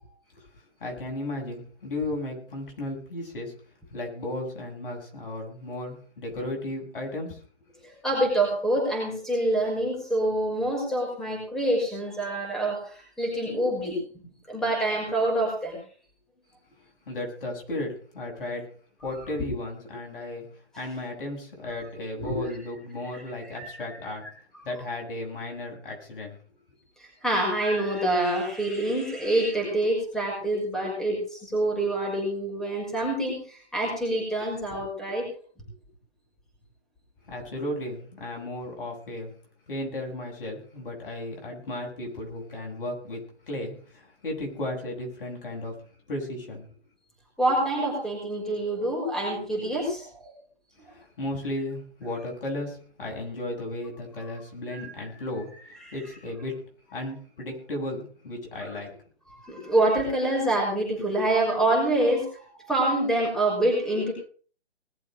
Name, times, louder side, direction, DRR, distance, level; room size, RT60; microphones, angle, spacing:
voice 1, 0.8-3.5 3.9-7.4 17.1-18.7 19.0-20.4 20.8-24.3 24.6-26.4 37.3-39.3 39.7-46.7 50.9-55.5 55.9-56.6 56.9-59.0, left 1 dB, 55° left, 1 dB, 7.9 m, -35 dB
voice 2, 7.8-14.0 14.5-15.8 17.7-17.8 22.2-22.4 23.1-24.3 27.0-35.2 47.4-50.1 55.8-56.0 58.6-58.7 59.3-64.1, right 1 dB, ahead, -2 dB, 5.9 m, -26 dB
20.5 x 7.6 x 6.6 m, 0.43 s
hypercardioid pair, 155°, 33 cm